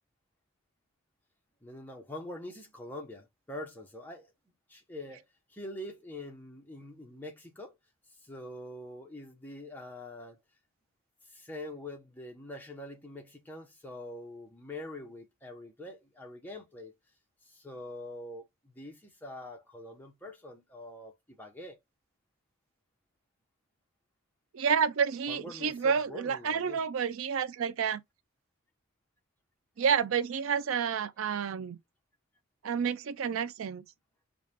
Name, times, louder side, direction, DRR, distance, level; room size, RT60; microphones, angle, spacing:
voice 1, 1.6-4.3 4.7-7.8 8.2-10.4 11.2-16.9 17.4-21.8 25.3-26.8, left 1 dB, 10° left, 1.0 m, -44 dB
voice 2, 24.5-28.0 29.8-31.8 32.6-33.8, right 7 dB, 65° right, 0.4 m, -29 dB
4.8 x 2.4 x 3.4 m
head